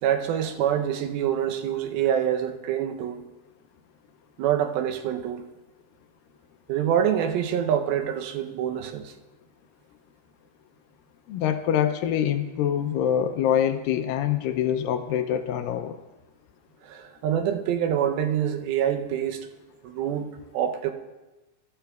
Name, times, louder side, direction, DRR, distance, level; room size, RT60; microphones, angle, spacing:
voice 1, 0.0-3.2 4.4-5.4 6.7-9.1 16.8-19.5 19.8-20.9, right 9 dB, 85° right, 2.6 m, -26 dB
voice 2, 11.3-16.0, left 9 dB, 80° left, 2.2 m, -25 dB
22.0 x 12.5 x 2.3 m
omnidirectional pair, 4.3 m